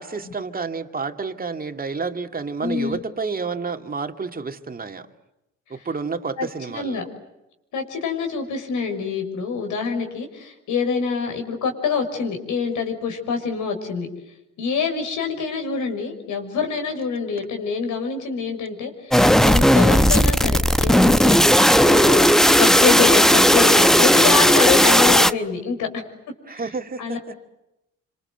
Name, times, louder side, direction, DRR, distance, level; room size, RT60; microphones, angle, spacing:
voice 1, 0.0-5.1 5.7-7.0 26.5-27.3, right 4 dB, 30° right, 2.4 m, -30 dB
voice 2, 2.6-3.0 5.8-5.9 6.4-7.0 7.7-14.1 14.6-26.0 26.5-26.6 27.0-27.2, left 5 dB, 80° left, 6.3 m, -26 dB
sound 1, 19.1-25.3, equal, ahead, 0.9 m, -15 dB
27.5 x 26.5 x 7.9 m
cardioid pair, 90°, 30 cm